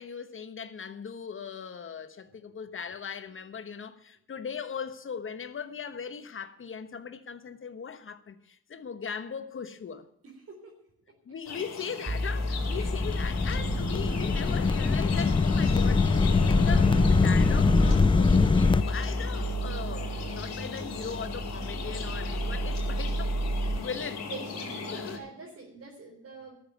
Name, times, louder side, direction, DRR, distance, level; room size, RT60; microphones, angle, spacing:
voice 1, 0.0-10.1 11.2-23.3 23.8-24.3 24.9-25.2, left 6 dB, 45° left, 1.2 m, -39 dB
sound 1, 11.4-25.2, left 5 dB, 60° left, 4.3 m, -38 dB
sound 2, 12.1-23.8, right 1 dB, 10° right, 2.1 m, -32 dB
sound 3, 12.5-18.8, left 4 dB, 15° left, 0.5 m, -23 dB
voice 2, 24.2-26.5, right 4 dB, 50° right, 4.0 m, -44 dB
13.5 x 7.2 x 9.4 m
cardioid pair, 90°, 30 cm